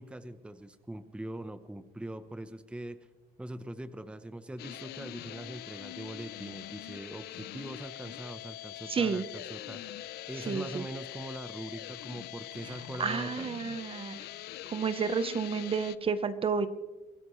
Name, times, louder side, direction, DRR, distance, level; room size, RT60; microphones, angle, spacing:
voice 1, 0.0-3.1 3.4-10.0 10.3-13.5, right 1 dB, 5° right, 10 dB, 0.8 m, -42 dB
sound 1, 4.6-16.0, left 14 dB, 70° left, 0.6 m, -43 dB
voice 2, 8.9-9.2 10.5-10.8 13.0-14.2 14.7-16.7, right 5 dB, 35° right, 12 dB, 0.9 m, -31 dB
25.0 x 15.5 x 3.2 m, 1.2 s
cardioid pair, 110°, 17 cm